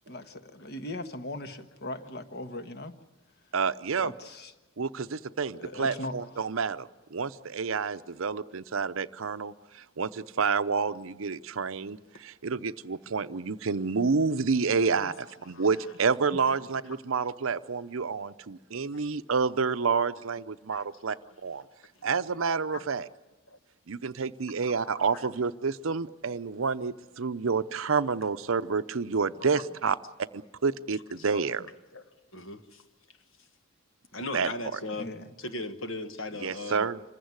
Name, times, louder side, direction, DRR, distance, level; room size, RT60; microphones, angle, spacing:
voice 1, 0.1-3.0 4.0-4.5 5.6-6.3 35.0-35.3, left 1 dB, 50° left, 8 dB, 1.4 m, -39 dB
voice 2, 3.5-4.1 4.8-21.2 21.4-21.6 22.0-23.1 23.9-30.0 30.3-31.7 34.3-34.8 36.4-37.0, right 5 dB, 70° right, 14 dB, 0.7 m, -29 dB
voice 3, 20.7-21.2 22.7-22.9 23.5-23.6 24.8-25.2 29.0-29.5 31.3-31.4 31.9-32.0 32.3-32.8 34.1-35.1 35.4-36.9, left 2 dB, 70° left, 8 dB, 1.6 m, -39 dB
26.0 x 15.5 x 9.5 m, 1.2 s
head